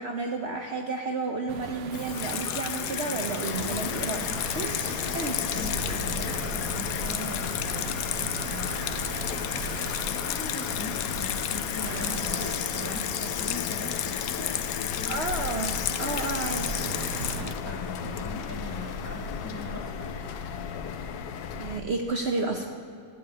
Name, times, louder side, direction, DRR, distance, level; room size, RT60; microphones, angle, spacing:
voice 1, 0.0-4.3 4.5-5.4 15.1-16.8 21.6-22.7, right 3 dB, 55° right, 3 dB, 0.7 m, -31 dB
sound 1, 1.5-17.5, right 8 dB, 75° right, 1.2 m, -40 dB
Water tap faucet / Sink (filling or washing), 1.9-18.6, left 10 dB, 70° left, 0.9 m, -32 dB
sound 2, 3.4-21.8, left 5 dB, 85° left, 1.3 m, -36 dB
voice 2, 4.9-7.9 8.4-15.5 17.6-20.2, left 2 dB, 20° left, 1 dB, 0.4 m, -41 dB
8.7 x 8.4 x 8.7 m, 2.5 s
omnidirectional pair, 1.9 m